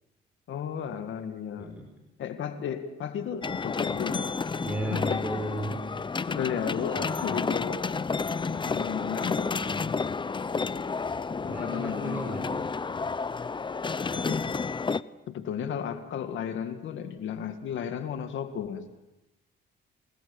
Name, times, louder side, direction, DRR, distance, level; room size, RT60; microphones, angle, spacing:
voice 1, 0.5-1.8 2.2-4.2 4.8-5.3 6.3-7.8 8.5-9.6 11.4-12.5 14.1-14.4 15.3-18.9, left 8 dB, 75° left, 7 dB, 2.0 m, -34 dB
sound 1, 3.4-15.0, left 4 dB, 25° left, 0.7 m, -31 dB
voice 2, 4.6-5.8 7.0-7.3 9.6-9.8 11.5-12.6, right 1 dB, 10° right, 2 dB, 4.5 m, -34 dB
28.0 x 19.0 x 7.1 m, 1.0 s
cardioid pair, 90°, 20 cm